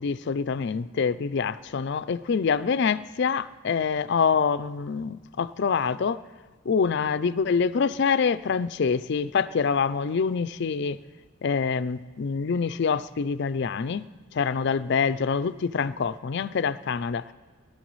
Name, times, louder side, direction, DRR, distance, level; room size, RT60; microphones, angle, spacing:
voice 1, 0.0-6.2 6.7-11.0 11.4-14.1 14.3-17.2, left 5 dB, 55° left, 16 dB, 0.4 m, -25 dB
22.5 x 11.0 x 3.1 m, 1.4 s
head